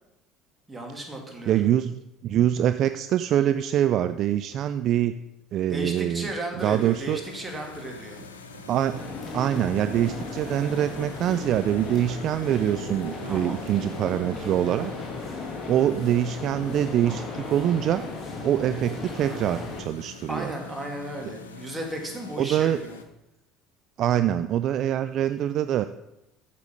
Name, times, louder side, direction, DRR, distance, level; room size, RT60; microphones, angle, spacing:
voice 1, 0.7-1.7 5.6-8.2 13.3-13.6 20.3-23.0, right 1 dB, 15° right, 2 dB, 2.3 m, -35 dB
voice 2, 1.5-5.2 5.5-6.3 6.6-7.2 8.7-9.0 9.3-14.9 15.7-18.0 18.4-20.5 22.4-22.8 24.0-25.8, right 11 dB, 50° right, 11 dB, 0.3 m, -24 dB
sound 1, 6.6-23.0, left 5 dB, 85° left, 0.7 m, -45 dB
sound 2, 7.4-14.5, right 2 dB, 85° right, 1.3 m, -45 dB
sound 3, 8.9-19.8, left 3 dB, 20° left, 2.2 m, -36 dB
8.3 x 6.8 x 5.2 m, 0.88 s
hypercardioid pair, 65°, 0 cm